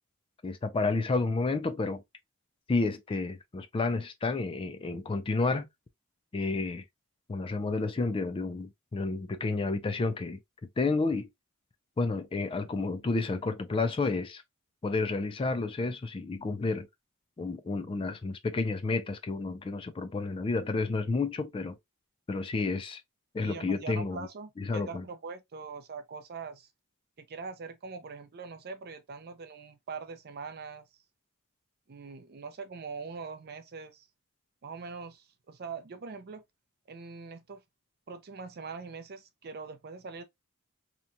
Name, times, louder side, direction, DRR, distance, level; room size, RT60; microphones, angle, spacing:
voice 1, 0.4-2.0 2.7-5.7 6.3-6.8 7.3-10.4 10.8-11.3 12.0-14.4 14.8-16.9 17.4-21.8 22.3-23.0 23.3-24.3 24.6-25.0, left 3 dB, 25° left, 0.3 m, -30 dB
voice 2, 23.4-26.7 27.2-30.8 31.9-34.1 34.6-36.4 36.9-37.6 38.1-40.2, right 4 dB, 45° right, 0.5 m, -42 dB
2.9 x 2.2 x 2.5 m
head